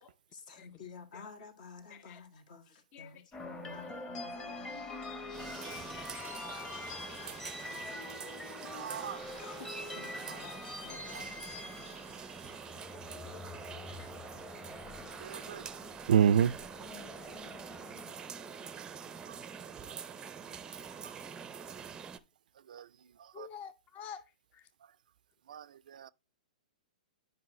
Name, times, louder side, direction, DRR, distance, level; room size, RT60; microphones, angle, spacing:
voice 1, 0.3-4.8 7.8-7.9 9.4-11.3, left 5 dB, 65° left, 1.6 m, -51 dB
voice 2, 1.9-2.2 2.9-3.1 4.6-4.7 14.0-14.1 23.3-24.2 24.5-24.6, left 8 dB, 30° left, 0.6 m, -48 dB
sound 1, 3.3-19.5, left 2 dB, 15° left, 0.9 m, -45 dB
sound 2, 5.3-22.2, right 7 dB, 15° right, 0.5 m, -46 dB
voice 3, 8.7-9.2 9.7-9.8 10.3-10.4 11.1-11.2 15.2-15.6 16.1-16.5 19.3-19.4 22.7-22.9 23.2-23.5 25.5-26.1, right 8 dB, 70° right, 0.3 m, -30 dB
9.4 x 5.2 x 3.1 m
hypercardioid pair, 120°, 5 cm